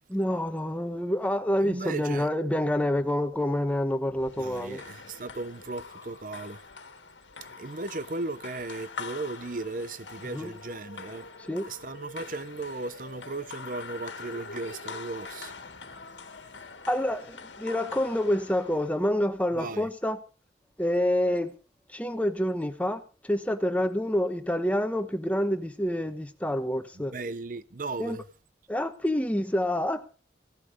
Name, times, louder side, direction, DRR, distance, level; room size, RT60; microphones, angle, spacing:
voice 1, 0.1-4.8 10.3-10.5 11.5-11.7 16.9-20.2 20.8-21.5 21.9-27.1 28.0-28.2 28.7-30.1, left 1 dB, 10° left, 1.1 m, -27 dB
voice 2, 1.6-2.3 4.4-6.6 7.6-11.3 11.6-15.5 19.5-19.9 27.1-28.2, right 3 dB, 45° right, 0.7 m, -36 dB
sound 1, 4.2-19.1, left 5 dB, 80° left, 1.7 m, -44 dB
16.5 x 12.0 x 4.9 m
head